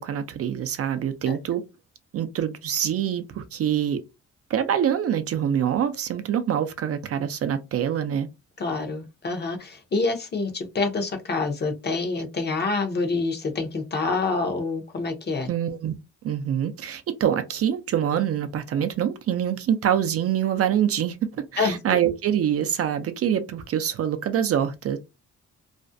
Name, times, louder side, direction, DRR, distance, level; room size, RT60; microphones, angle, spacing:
voice 1, 0.0-1.6 2.1-4.0 4.5-8.3 15.5-15.9 16.2-25.0, right 9 dB, 50° right, 0.5 m, -25 dB
voice 2, 8.6-15.5 21.6-22.0, left 3 dB, 35° left, 0.7 m, -27 dB
2.5 x 2.1 x 2.5 m
cardioid pair, 90°, 30 cm